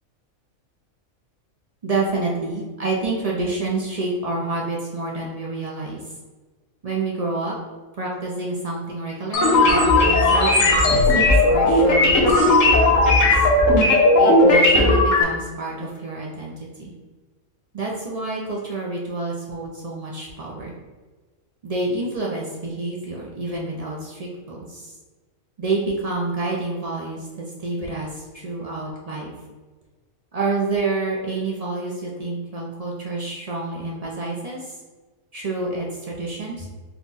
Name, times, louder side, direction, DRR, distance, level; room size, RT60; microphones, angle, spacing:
voice 1, 1.8-6.0 6.8-7.6 8.0-13.5 14.2-16.9 17.7-20.7 21.6-24.9 25.6-29.3 30.3-34.8 35.3-36.7, right 3 dB, 50° right, -3 dB, 0.4 m, -28 dB
sound 1, 9.3-15.2, left 2 dB, 70° left, 1.1 m, -16 dB
4.2 x 2.3 x 3.9 m, 1.3 s
omnidirectional pair, 1.5 m